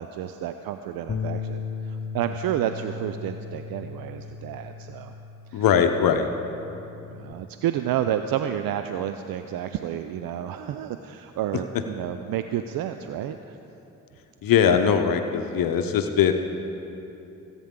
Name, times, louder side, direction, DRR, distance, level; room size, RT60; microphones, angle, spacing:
voice 1, 0.0-5.1 5.5-5.6 7.1-13.6, right 10 dB, 80° right, 8 dB, 0.5 m, -30 dB
Bass guitar, 1.1-7.3, left 5 dB, 35° left, 0.7 m, -36 dB
voice 2, 5.5-6.3 14.4-16.3, left 8 dB, 75° left, 7 dB, 0.7 m, -20 dB
20.0 x 9.0 x 3.7 m, 3.0 s
supercardioid pair, 50°, 35 cm